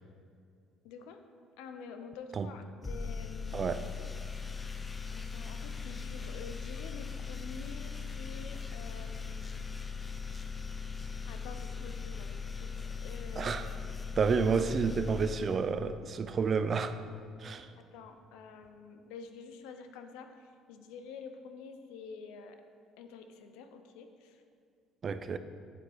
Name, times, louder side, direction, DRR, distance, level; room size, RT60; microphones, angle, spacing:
voice 1, 0.8-1.2 1.6-3.7 5.1-9.6 11.3-13.6 17.3-22.6 23.0-24.4, left 5 dB, 90° left, 7 dB, 0.6 m, -48 dB
sound 1, 2.8-16.2, left 5 dB, 20° left, 0.5 m, -40 dB
voice 2, 3.5-3.9 13.4-13.7 14.2-17.0 17.4-17.7 25.0-25.4, right 5 dB, 40° right, 11 dB, 0.4 m, -30 dB
9.1 x 3.9 x 4.6 m, 2.2 s
cardioid pair, 105°, 0 cm